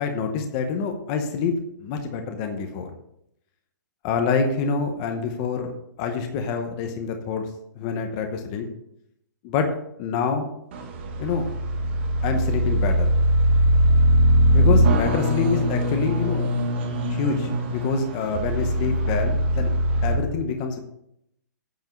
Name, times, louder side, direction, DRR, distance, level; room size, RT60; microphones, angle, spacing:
voice 1, 0.0-1.5 1.8-2.9 4.0-5.7 6.0-7.5 7.8-8.7 9.4-9.7 10.0-10.5 11.2-11.5 12.2-13.1 14.5-16.5 17.1-19.7 20.0-20.8, left 5 dB, 20° left, 5 dB, 0.8 m, -26 dB
sound 1, 10.7-20.1, equal, 35° right, 1.5 m, -21 dB
9.1 x 5.3 x 7.9 m, 0.77 s
hypercardioid pair, 180°, 10 cm